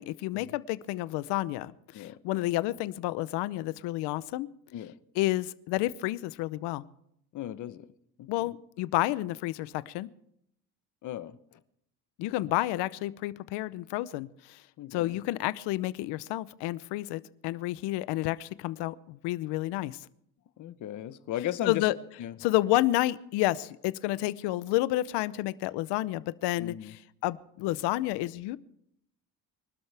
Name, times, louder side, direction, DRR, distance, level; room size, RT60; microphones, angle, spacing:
voice 1, 0.0-4.5 5.2-6.8 8.3-10.1 12.2-14.6 14.9-20.0 21.7-22.0 22.4-28.6, left 17 dB, 85° left, 16 dB, 0.8 m, -30 dB
voice 2, 7.3-7.9 8.2-8.3 11.0-11.6 14.8-15.2 20.6-21.9 22.2-22.3 26.6-26.9, left 12 dB, 45° left, 13 dB, 0.9 m, -36 dB
25.0 x 12.5 x 3.4 m, 0.71 s
cardioid pair, 140°, 40 cm